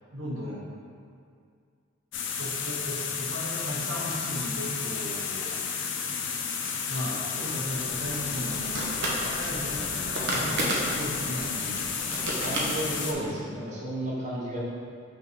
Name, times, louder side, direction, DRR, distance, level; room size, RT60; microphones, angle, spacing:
voice 1, 0.1-0.6 2.4-5.6 6.8-11.9, equal, 85° right, -5 dB, 1.4 m, -36 dB
sound 1, 2.1-13.1, left 6 dB, 70° left, 0.6 m, -32 dB
sound 2, 7.7-13.3, right 1 dB, 60° right, 1.0 m, -33 dB
voice 2, 12.4-14.6, right 1 dB, 35° right, -6 dB, 1.3 m, -33 dB
5.5 x 3.8 x 4.8 m, 2.3 s
head